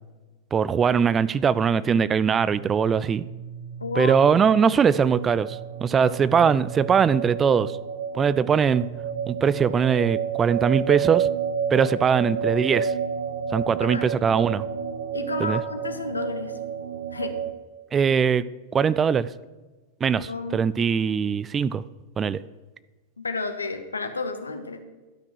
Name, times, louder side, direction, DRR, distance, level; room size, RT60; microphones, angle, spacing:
voice 1, 0.5-3.2 4.0-7.8 8.1-8.9 9.3-11.3 11.7-12.9 13.5-14.7 15.4-15.6 17.9-18.4 18.7-19.3 20.0-21.8 22.2-22.4, right 6 dB, 20° right, 0.3 m, -21 dB
sound 1, 2.1-17.5, right 7 dB, 65° right, 0.6 m, -31 dB
voice 2, 3.8-4.4 6.0-6.2 11.8-11.9 13.9-14.1 15.1-16.5 17.1-17.4 20.1-20.6 23.2-24.8, left 3 dB, 75° left, 1.0 m, -31 dB
11.5 x 5.9 x 6.2 m
figure-of-eight pair, 90°, 0 cm